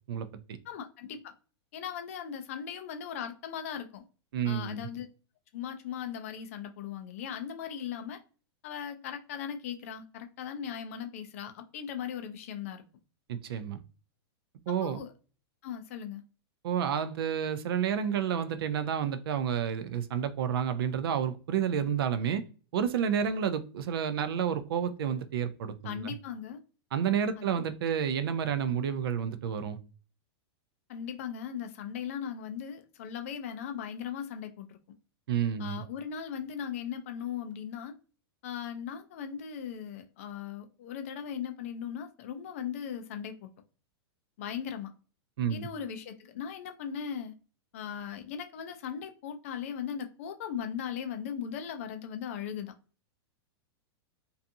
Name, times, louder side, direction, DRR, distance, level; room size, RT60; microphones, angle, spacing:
voice 1, 0.1-0.6 4.3-4.9 13.3-13.8 14.7-15.0 16.6-22.4 22.7-26.1 26.9-29.8 35.3-35.8 45.4-45.7, right 8 dB, 60° right, 0.4 m, -30 dB
voice 2, 0.6-1.3 1.7-4.0 4.4-5.1 5.5-8.2 8.6-12.8 14.7-15.1 15.6-16.2 25.8-26.6 27.4-27.7 30.9-34.8 35.6-37.9 38.4-43.5 44.4-44.9 45.5-47.3 47.7-52.7, left 8 dB, 30° left, 0.3 m, -38 dB
2.6 x 2.3 x 2.6 m
supercardioid pair, 180°, 14 cm